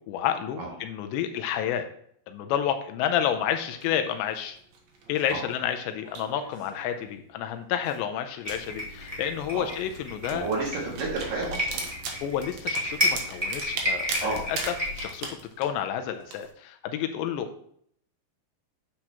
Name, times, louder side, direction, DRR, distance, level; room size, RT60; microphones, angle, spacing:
voice 1, 0.0-1.9 2.3-4.6 5.1-10.5 12.2-14.6 14.9-15.3 15.6-17.7, left 9 dB, 85° left, 7 dB, 2.8 m, -30 dB
sound 1, 3.7-16.5, right 4 dB, 85° right, 1.5 m, -40 dB
sound 2, 8.4-15.1, left 1 dB, 20° right, 0.8 m, -32 dB
voice 2, 10.3-11.9 14.2-14.5, right 3 dB, 55° right, -3 dB, 3.4 m, -31 dB
9.7 x 7.4 x 2.9 m, 0.66 s
omnidirectional pair, 5.2 m